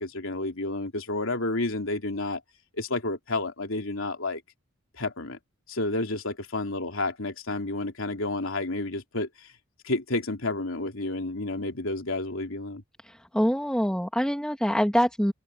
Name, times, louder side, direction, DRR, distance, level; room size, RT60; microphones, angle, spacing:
voice 1, 0.0-2.4 2.8-4.4 5.0-5.4 5.7-9.5 9.8-12.8, left 2 dB, 75° left, 3.2 m, -30 dB
voice 2, 13.3-15.3, equal, 5° left, 2.1 m, -24 dB
open air
head